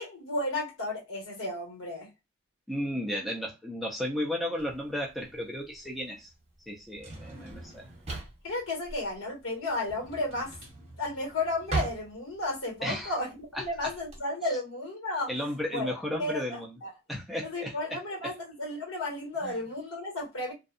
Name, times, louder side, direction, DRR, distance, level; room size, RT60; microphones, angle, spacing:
voice 1, 0.0-2.1 8.4-10.6 11.0-15.3 15.7-15.9 16.2-16.9 17.4-20.5, left 2 dB, 70° left, 1.5 m, -33 dB
voice 2, 2.7-6.3 6.7-7.8 12.8-13.1 13.5-13.6 15.3-16.8 17.1-17.7 18.2-18.3 19.4-19.6, left 1 dB, ahead, 0.4 m, -34 dB
Drawer open or close, 4.6-14.2, right 2 dB, 30° right, 1.1 m, -39 dB
2.6 x 2.2 x 2.4 m
head